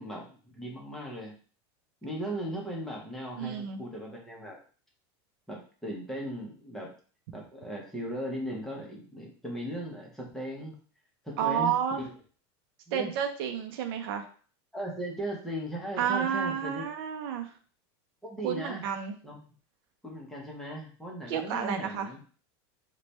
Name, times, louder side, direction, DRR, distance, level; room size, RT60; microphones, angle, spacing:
voice 1, 0.0-1.4 2.0-4.6 5.5-6.9 7.3-10.8 11.2-12.1 12.9-13.1 14.7-16.8 18.2-18.8 19.2-19.4 20.0-22.2, right 1 dB, ahead, -2 dB, 0.7 m, -37 dB
voice 2, 3.4-3.8 11.4-12.0 12.9-14.2 16.0-17.5 18.4-19.1 21.3-22.1, right 8 dB, 60° right, 5 dB, 0.5 m, -30 dB
3.1 x 2.2 x 4.0 m, 0.41 s
supercardioid pair, 165°, 14 cm